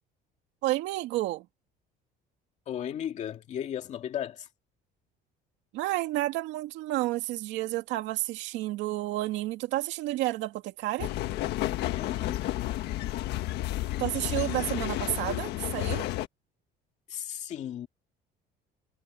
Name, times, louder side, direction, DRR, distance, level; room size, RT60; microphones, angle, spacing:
voice 1, 0.6-1.5 5.7-11.1 14.0-16.0, right 16 dB, 75° right, 2.3 m, -30 dB
voice 2, 2.7-4.5 11.9-12.5 17.1-17.9, left 10 dB, 40° left, 2.2 m, -35 dB
sound 1, 11.0-16.3, left 15 dB, 65° left, 1.5 m, -31 dB
cardioid pair, 175°, 19 cm